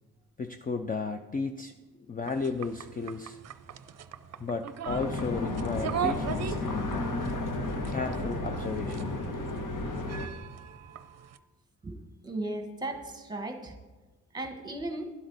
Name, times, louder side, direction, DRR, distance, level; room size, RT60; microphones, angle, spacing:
voice 1, 0.4-1.8 2.1-3.4 4.4-7.1 7.9-9.2, left 4 dB, 25° left, 7 dB, 0.4 m, -34 dB
sound 1, 2.2-11.4, right 8 dB, 55° right, 0.5 m, -40 dB
sound 2, 4.9-10.3, left 2 dB, 70° left, 1.4 m, -33 dB
voice 2, 12.2-13.7 14.3-15.0, right 2 dB, 10° right, 5 dB, 1.1 m, -36 dB
12.0 x 12.0 x 4.0 m, 1.3 s
wide cardioid pair, 165°, 33 cm